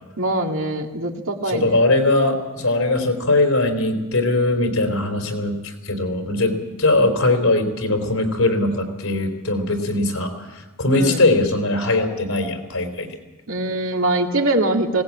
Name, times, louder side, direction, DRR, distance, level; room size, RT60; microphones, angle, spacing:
voice 1, 0.2-1.8 10.9-11.3 13.5-15.0, right 2 dB, 65° right, 2 dB, 2.3 m, -23 dB
voice 2, 1.5-13.2, left 2 dB, 75° left, 5 dB, 3.9 m, -20 dB
20.0 x 18.5 x 8.7 m, 1.2 s
head